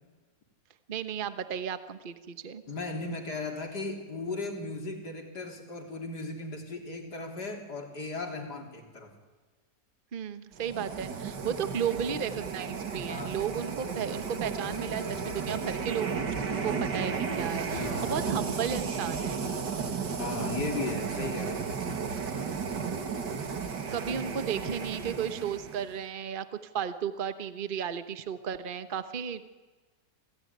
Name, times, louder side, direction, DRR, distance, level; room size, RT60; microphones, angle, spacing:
voice 1, 0.9-2.6 10.1-16.1 16.6-19.4 23.9-29.5, right 8 dB, 35° right, 11 dB, 1.1 m, -34 dB
voice 2, 2.7-9.1 13.1-13.4 17.7-18.3 20.2-21.6, left 3 dB, 70° left, 3 dB, 4.1 m, -36 dB
sound 1, 10.6-26.0, right 5 dB, 85° right, 2.5 m, -34 dB
sound 2, 13.2-24.0, left 1 dB, 10° left, 2.9 m, -50 dB
28.0 x 17.0 x 9.7 m, 1.3 s
omnidirectional pair, 1.8 m